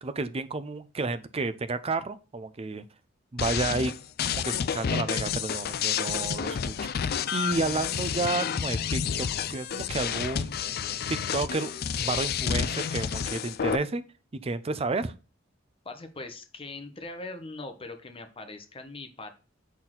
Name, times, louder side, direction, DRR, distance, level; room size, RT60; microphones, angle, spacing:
voice 1, 0.0-2.8 3.3-3.9 4.3-6.9 7.3-10.6 11.1-11.7 12.0-14.0 14.4-15.1, right 3 dB, 30° right, 0.5 m, -31 dB
sound 1, 3.4-13.8, left 7 dB, 50° left, 0.4 m, -30 dB
voice 2, 15.8-19.3, left 2 dB, 30° left, 1.0 m, -41 dB
6.1 x 4.3 x 3.8 m
head